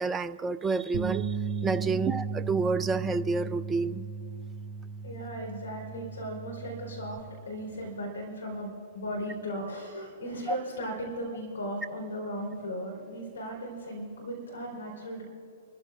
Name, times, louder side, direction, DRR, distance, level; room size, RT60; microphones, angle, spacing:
voice 1, 0.0-1.4 1.6-4.0 10.5-10.6, right 4 dB, 15° right, 13 dB, 0.4 m, -29 dB
sound 1, 0.9-7.2, right 5 dB, 45° right, 0.9 m, -35 dB
voice 2, 5.0-15.2, equal, 70° left, 0 dB, 4.3 m, -37 dB
28.5 x 14.0 x 2.5 m, 2.5 s
figure-of-eight pair, 110°, 0 cm